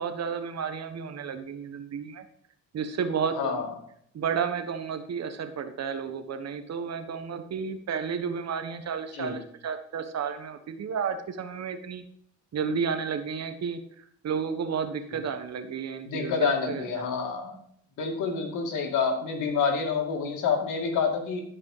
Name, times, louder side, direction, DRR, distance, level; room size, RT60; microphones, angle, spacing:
voice 1, 0.0-2.3 2.7-3.6 4.1-12.0 12.5-17.2, right 6 dB, 60° right, 9 dB, 1.4 m, -32 dB
voice 2, 3.3-3.7 9.1-9.4 16.1-17.6 18.0-21.4, left 5 dB, 85° left, 2 dB, 2.4 m, -28 dB
12.5 x 5.3 x 5.0 m, 0.65 s
cardioid pair, 90°, 30 cm